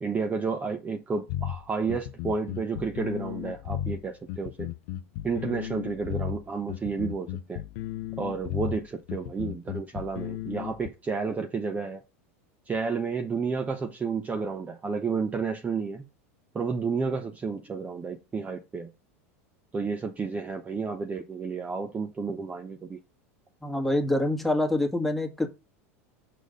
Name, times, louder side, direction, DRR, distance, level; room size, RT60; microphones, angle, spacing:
voice 1, 0.0-4.7 5.2-7.6 8.2-12.0 12.7-16.0 16.5-18.9 19.7-23.0, right 5 dB, 20° right, 0.8 m, -31 dB
sound 1, 1.3-10.9, left 13 dB, 65° left, 0.5 m, -34 dB
voice 2, 23.6-25.5, left 1 dB, ahead, 1.7 m, -26 dB
6.7 x 3.8 x 5.0 m
hypercardioid pair, 105°, 8 cm